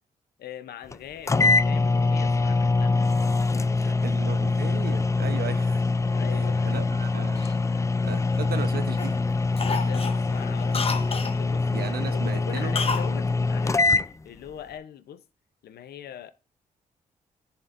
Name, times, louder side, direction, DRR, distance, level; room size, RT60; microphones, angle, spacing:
voice 1, 0.4-3.1 3.5-4.3 6.1-6.9 7.7-8.0 9.6-10.8 11.3-14.0 14.2-15.2 15.6-16.3, left 10 dB, 80° left, 0.7 m, -42 dB
sound 1, 0.9-1.0 1.3-14.1, left 3 dB, 20° left, 0.3 m, -24 dB
voice 2, 3.8-5.8 6.3-7.4 8.0-9.2 11.7-12.8, right 7 dB, 70° right, 0.9 m, -36 dB
Cough, 7.4-8.6 9.0-9.2 9.6-11.4 12.7-13.1 13.4-13.5, left 4 dB, 35° left, 0.9 m, -31 dB
10.5 x 4.3 x 2.5 m
cardioid pair, 65°, 16 cm